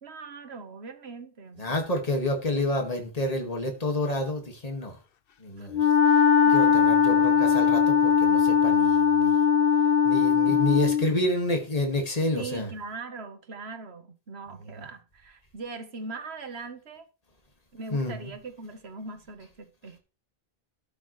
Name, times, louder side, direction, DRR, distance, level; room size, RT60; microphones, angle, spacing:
voice 1, 0.0-1.9 5.6-5.7 6.4-6.5 7.1-7.2 10.5-10.6 12.3-17.1 17.7-20.0, right 3 dB, 90° right, 1.6 m, -40 dB
voice 2, 1.6-5.0 5.4-9.3 10.0-12.7 14.6-14.8 17.9-18.3, left 1 dB, 40° left, 2.1 m, -29 dB
Wind instrument woodwind instrument, 5.7-11.1, left 7 dB, 65° left, 0.9 m, -20 dB
13.0 x 8.0 x 3.2 m
omnidirectional pair, 1.0 m